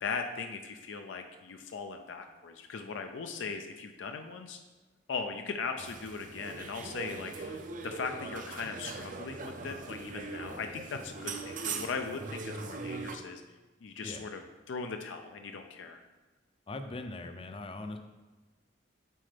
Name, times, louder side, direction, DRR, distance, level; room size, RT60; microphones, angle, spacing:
voice 1, 0.0-4.6 5.1-13.4 13.8-14.4 14.7-16.0, left 5 dB, 85° left, 5 dB, 0.4 m, -39 dB
sound 1, 5.8-13.2, right 4 dB, 45° right, 0.5 m, -41 dB
voice 2, 16.7-18.0, left 2 dB, 30° left, 7 dB, 0.5 m, -40 dB
7.5 x 4.3 x 3.3 m, 1.2 s
head